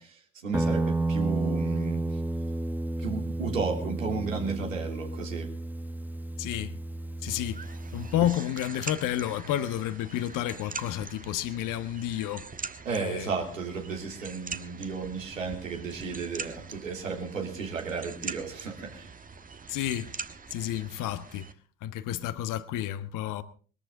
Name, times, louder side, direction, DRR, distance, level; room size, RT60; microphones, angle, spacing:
voice 1, 0.0-2.2 3.0-5.5 12.8-19.1, right 4 dB, 85° right, 3.3 m, -34 dB
Guitar, 0.5-8.4, right 2 dB, 5° right, 1.4 m, -31 dB
voice 2, 6.4-6.8 7.2-7.7 7.9-12.4 12.9-13.3 19.7-20.1 20.5-21.5 21.8-23.4, left 12 dB, 55° left, 1.4 m, -31 dB
sound 1, 7.3-21.5, right 5 dB, 20° right, 1.4 m, -43 dB
22.0 x 14.0 x 3.9 m
figure-of-eight pair, 60°, 38 cm